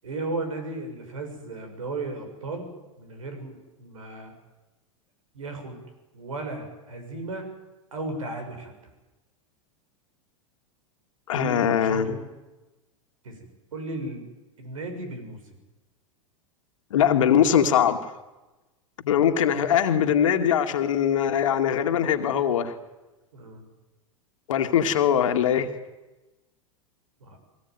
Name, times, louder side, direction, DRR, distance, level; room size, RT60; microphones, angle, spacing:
voice 1, 0.0-2.7 3.0-4.3 5.3-5.8 6.1-7.5 7.9-8.7 11.3-12.2 13.2-14.3 14.6-15.4 23.3-23.6 27.2-27.4, right 2 dB, 80° right, 5 dB, 7.4 m, -35 dB
voice 2, 11.3-12.2 16.9-18.1 19.0-22.7 24.5-25.7, left 9 dB, 75° left, 5 dB, 2.2 m, -22 dB
23.0 x 18.5 x 9.6 m, 1.1 s
hypercardioid pair, 95°, 17 cm